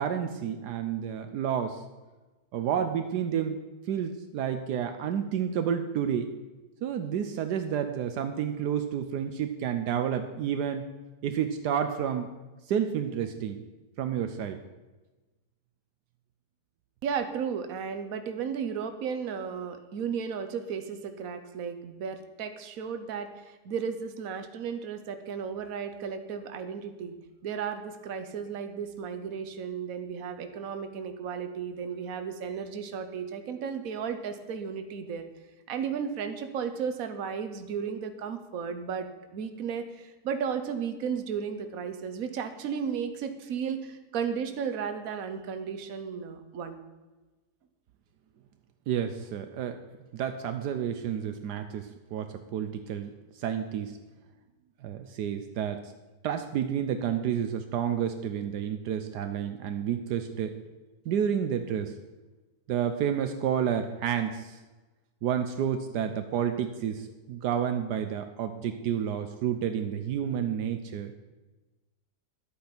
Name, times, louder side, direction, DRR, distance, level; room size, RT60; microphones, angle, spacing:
voice 1, 0.0-1.8 2.5-3.6 3.9-6.3 6.8-10.9 11.2-12.3 12.7-13.6 14.0-14.6 48.9-49.8 50.1-53.1 53.3-54.0 54.8-55.9 56.2-60.6 61.1-61.9 62.7-64.6 65.2-71.1, right 8 dB, 75° right, 8 dB, 1.3 m, -30 dB
voice 2, 17.0-27.1 27.4-35.2 35.7-39.1 39.3-46.8, right 7 dB, 60° right, 8 dB, 1.3 m, -34 dB
11.5 x 8.5 x 5.9 m, 1.2 s
omnidirectional pair, 1.8 m